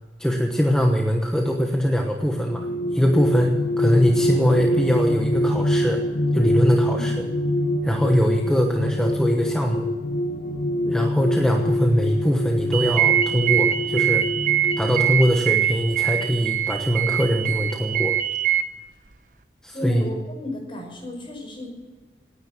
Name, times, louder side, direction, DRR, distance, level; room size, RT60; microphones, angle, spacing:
voice 1, 0.2-6.0 6.3-7.2 7.8-9.9 10.8-14.2 14.8-18.1 19.6-20.1, equal, 5° left, 1 dB, 1.1 m, -22 dB
sound 1, 2.3-15.1, left 1 dB, 90° left, 1.5 m, -25 dB
sound 2, 12.7-18.6, right 12 dB, 50° right, 1.0 m, -23 dB
voice 2, 19.7-21.7, left 1 dB, 30° left, 2 dB, 5.3 m, -33 dB
18.5 x 9.8 x 7.5 m, 1.2 s
head